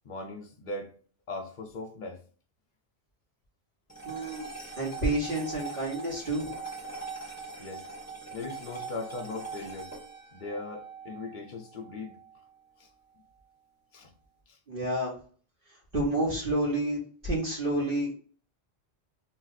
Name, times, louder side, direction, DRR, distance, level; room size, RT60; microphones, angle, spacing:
voice 1, 0.0-0.9 1.3-2.2 7.6-7.9 8.3-9.9 10.3-12.1 12.8-12.9 13.9-14.1 14.5-14.6, left 3 dB, 50° left, 0.7 m, -39 dB
sound 1, 3.9-12.4, right 4 dB, 15° left, 1.0 m, -42 dB
voice 2, 4.0-4.5 4.8-6.5 14.7-15.1 15.9-18.2, right 1 dB, 55° right, 1.4 m, -29 dB
2.7 x 2.5 x 3.9 m
omnidirectional pair, 1.2 m